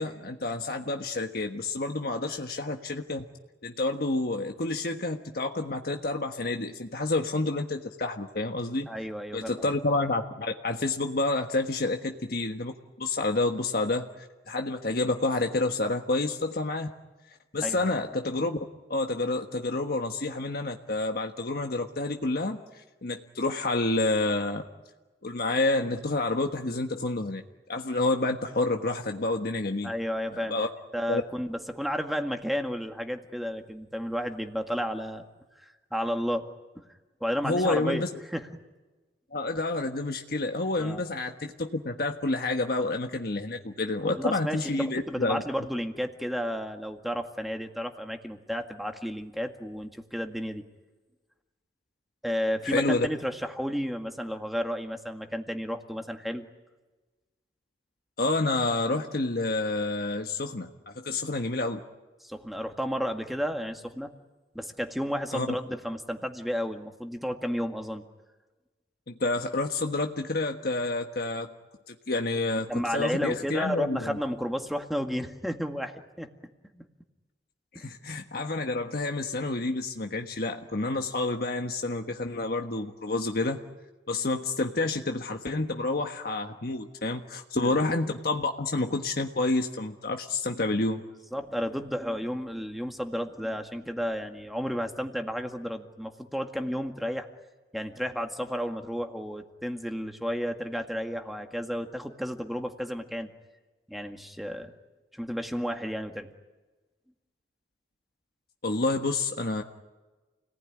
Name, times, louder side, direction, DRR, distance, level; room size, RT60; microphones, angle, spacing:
voice 1, 0.0-3.2 3.6-8.9 9.3-16.9 17.5-18.6 18.9-24.6 25.2-27.4 27.7-29.9 30.3-30.7 31.1-31.2 37.4-38.1 39.3-45.4 52.6-53.1 58.2-61.8 65.3-65.6 69.1-71.5 71.9-74.2 77.7-83.6 84.1-91.0 108.6-109.6, left 2 dB, 60° left, 4 dB, 1.4 m, -29 dB
voice 2, 8.9-9.7 17.6-17.9 29.8-30.7 30.9-35.2 35.9-36.5 36.8-36.9 37.2-38.1 38.3-38.5 40.8-41.0 44.0-50.6 52.2-56.5 62.2-64.1 64.5-68.0 72.7-76.3 76.7-76.8 77.8-77.9 87.6-87.7 91.3-97.3 97.7-103.3 103.9-104.7 105.1-106.3, equal, ahead, 4 dB, 1.9 m, -32 dB
29.5 x 19.0 x 10.0 m, 1.2 s
head